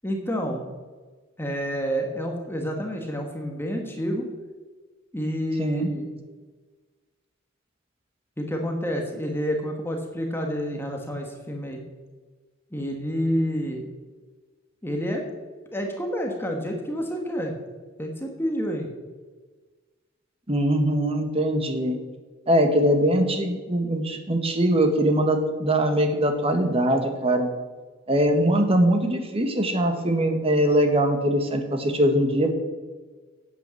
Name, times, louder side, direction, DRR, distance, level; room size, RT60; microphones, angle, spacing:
voice 1, 0.0-0.7 1.4-4.3 5.1-6.1 8.4-11.8 12.7-13.9 14.8-15.2 15.7-17.5 18.0-18.9, equal, 10° left, 2 dB, 1.4 m, -29 dB
voice 2, 5.6-5.9 20.5-22.0 22.5-27.5 28.1-32.5, right 1 dB, 30° right, 5 dB, 1.5 m, -22 dB
9.0 x 8.3 x 7.6 m, 1.4 s
head